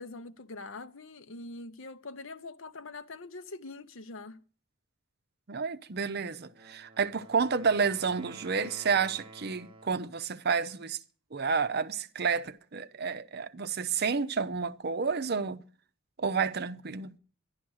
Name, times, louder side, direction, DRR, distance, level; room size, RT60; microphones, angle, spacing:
voice 1, 0.0-4.4, left 3 dB, 65° left, 0.8 m, -43 dB
voice 2, 5.5-11.0 11.3-15.6 16.2-17.2, right 5 dB, 50° right, 0.6 m, -30 dB
Wind instrument woodwind instrument, 6.4-10.2, right 2 dB, 25° right, 1.1 m, -51 dB
11.5 x 11.5 x 6.3 m
head